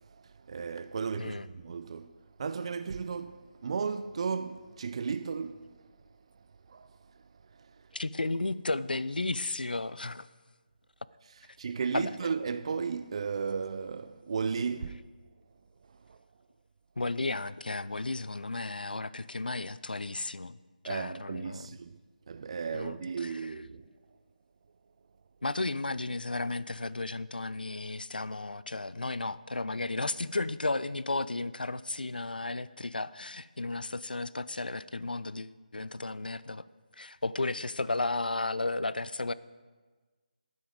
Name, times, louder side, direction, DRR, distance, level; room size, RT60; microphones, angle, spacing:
voice 1, 0.5-2.1 2.4-5.7 6.7-6.9 11.6-15.0 16.1-16.2 20.9-21.9 22.3-23.9, right 5 dB, 40° right, 0.3 m, -34 dB
voice 2, 7.9-10.3 11.9-12.2 17.0-20.6 20.8-21.7 22.7-23.5 25.4-36.7 36.9-39.3, left 2 dB, 85° left, 0.4 m, -34 dB
10.5 x 9.3 x 5.1 m
figure-of-eight pair, 155°, 5 cm